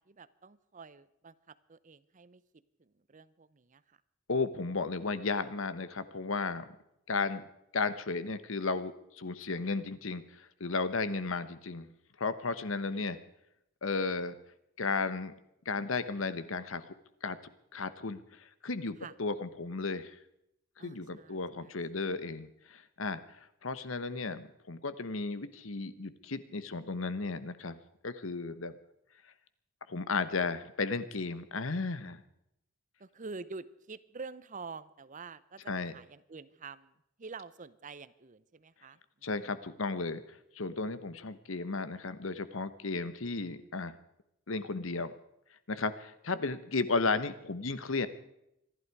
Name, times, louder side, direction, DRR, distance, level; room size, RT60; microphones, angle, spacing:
voice 1, 0.0-2.4 2.8-4.0 11.0-11.3 19.0-19.1 20.8-22.1 33.0-36.9 37.2-39.3, right 4 dB, 40° right, 17 dB, 0.7 m, -48 dB
voice 2, 4.3-6.6 7.1-7.4 7.7-11.9 12.2-13.2 13.8-14.3 14.8-15.3 15.7-16.9 17.2-17.4 17.7-20.1 20.8-23.2 23.6-27.8 28.0-28.7 29.9-32.2 35.7-35.9 39.2-40.2 40.5-43.9 44.5-45.1 45.7-48.1, left 4 dB, 75° left, 13 dB, 1.1 m, -34 dB
26.0 x 11.5 x 4.8 m, 0.80 s
head